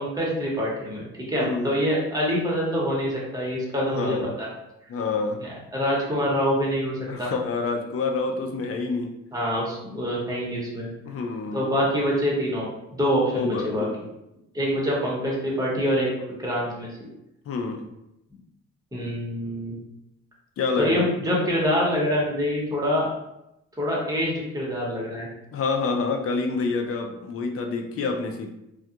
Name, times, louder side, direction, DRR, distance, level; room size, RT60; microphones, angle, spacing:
voice 1, 0.0-4.5 5.4-7.3 9.3-10.9 11.5-12.7 12.9-13.9 14.5-16.9 18.9-19.7 20.7-23.1 23.8-25.3, equal, 10° right, -5 dB, 1.0 m, -25 dB
voice 2, 1.4-1.7 3.9-4.3 4.9-5.4 7.1-9.1 11.1-11.6 13.3-14.1 17.5-17.9 20.6-21.1 25.5-28.5, left 4 dB, 50° left, 3 dB, 0.5 m, -27 dB
2.3 x 2.2 x 2.7 m, 0.87 s
cardioid pair, 90°, 30 cm